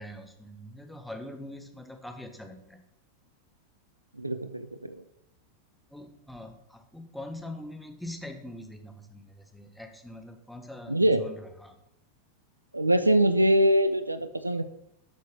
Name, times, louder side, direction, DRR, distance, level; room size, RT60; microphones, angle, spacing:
voice 1, 0.0-2.8 5.9-11.8, left 1 dB, ahead, 4 dB, 1.5 m, -43 dB
voice 2, 4.2-5.0 10.9-11.3 12.7-14.6, right 1 dB, 85° right, 12 dB, 0.8 m, -23 dB
12.0 x 6.5 x 4.8 m, 0.83 s
figure-of-eight pair, 90°, 0 cm